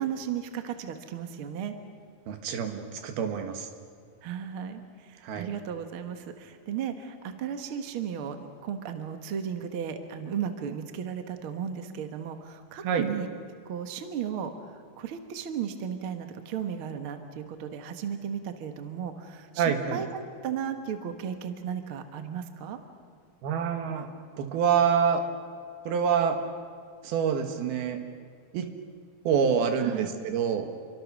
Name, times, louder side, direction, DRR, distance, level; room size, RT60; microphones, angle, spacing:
voice 1, 0.0-1.7 4.2-8.4 8.6-13.3 13.7-22.8 29.8-30.1, right 8 dB, 50° right, 6 dB, 1.7 m, -35 dB
voice 2, 2.3-3.7 5.2-5.5 12.8-13.1 19.6-20.0 23.4-24.1 24.4-25.2 25.9-26.4 27.0-28.0 28.5-28.7 29.3-30.7, right 7 dB, 90° right, 6 dB, 3.6 m, -26 dB
28.5 x 23.5 x 6.3 m, 2.1 s
omnidirectional pair, 4.3 m